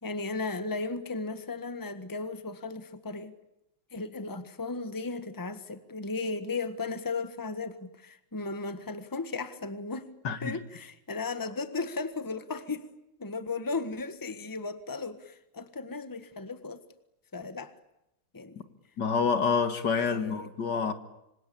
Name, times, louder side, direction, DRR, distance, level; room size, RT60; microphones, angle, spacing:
voice 1, 0.0-3.3 3.9-10.1 10.4-12.9 13.2-16.8 17.3-17.7 18.3-18.6 20.1-20.5, left 3 dB, 10° left, 1.4 m, -35 dB
voice 2, 10.2-10.6 19.0-20.9, left 5 dB, 75° left, 2.5 m, -27 dB
26.5 x 26.0 x 8.6 m
omnidirectional pair, 1.9 m